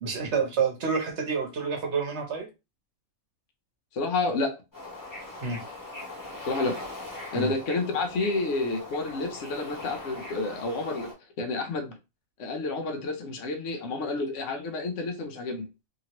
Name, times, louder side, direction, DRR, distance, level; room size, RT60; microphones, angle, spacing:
voice 1, 0.0-2.5 5.4-5.6 7.3-7.5, right 5 dB, 60° right, 1.0 m, -28 dB
voice 2, 3.9-4.5 6.5-6.8 7.3-11.9 12.4-15.7, left 3 dB, 60° left, 1.0 m, -30 dB
Bird / Ocean, 4.7-11.1, left 2 dB, 15° left, 0.9 m, -41 dB
2.8 x 2.7 x 2.9 m
omnidirectional pair, 1.5 m